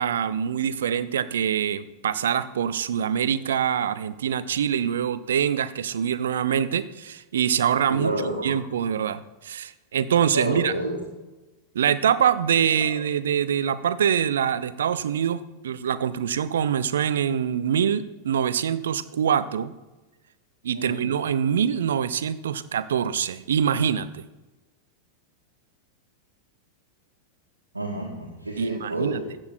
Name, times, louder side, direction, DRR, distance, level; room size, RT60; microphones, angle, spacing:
voice 1, 0.0-8.1 8.4-10.7 11.7-19.7 20.6-24.2 28.6-29.2, right 8 dB, 65° right, 15 dB, 0.5 m, -24 dB
voice 2, 7.9-8.6 10.3-11.0 20.7-21.0 27.7-29.4, right 1 dB, 80° right, -2 dB, 1.7 m, -29 dB
15.5 x 6.3 x 4.3 m, 1.1 s
figure-of-eight pair, 90°, 0 cm